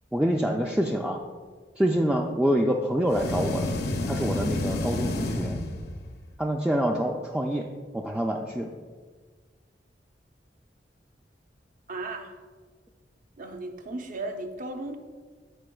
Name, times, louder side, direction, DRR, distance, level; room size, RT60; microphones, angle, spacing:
voice 1, 0.1-1.2 1.8-3.8 4.1-5.6 6.4-7.7 7.9-8.7, equal, 5° right, 0 dB, 0.3 m, -26 dB
sound 1, 3.1-6.2, left 2 dB, 65° left, 0.6 m, -30 dB
voice 2, 11.9-12.4 13.4-15.0, right 2 dB, 50° right, 5 dB, 0.6 m, -35 dB
12.5 x 4.4 x 2.3 m, 1.5 s
head